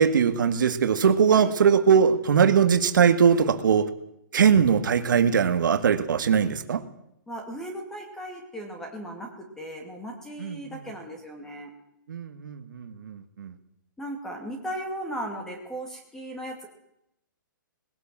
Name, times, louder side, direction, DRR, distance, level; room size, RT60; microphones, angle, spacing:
voice 1, 0.0-3.9 4.3-6.8 10.4-10.8 12.1-13.5, right 7 dB, 65° right, 8 dB, 2.0 m, -21 dB
voice 2, 7.3-11.7 14.0-16.7, right 1 dB, 5° left, 3 dB, 2.3 m, -37 dB
20.0 x 17.0 x 7.6 m, 0.80 s
hypercardioid pair, 165°, 11 cm